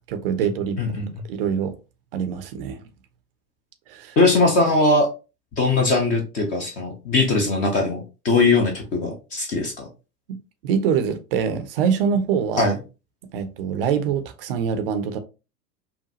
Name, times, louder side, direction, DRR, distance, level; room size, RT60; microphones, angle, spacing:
voice 1, 0.1-0.8 1.3-1.7 2.1-2.8 3.9-4.2 10.3-10.4 10.6-12.8 13.3-15.2, right 7 dB, 35° right, 0.5 m, -24 dB
voice 2, 0.8-1.1 4.2-5.1 5.6-9.9 12.6-12.7, left 3 dB, 15° left, 0.4 m, -20 dB
5.6 x 2.3 x 2.7 m
figure-of-eight pair, 95°, 49 cm